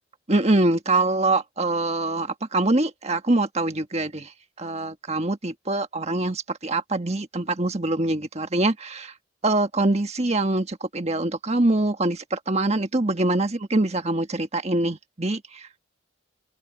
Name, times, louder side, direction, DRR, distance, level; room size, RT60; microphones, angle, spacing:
voice 1, 0.3-4.3 4.6-9.1 9.4-15.8, right 2 dB, 35° right, 1.5 m, -24 dB
head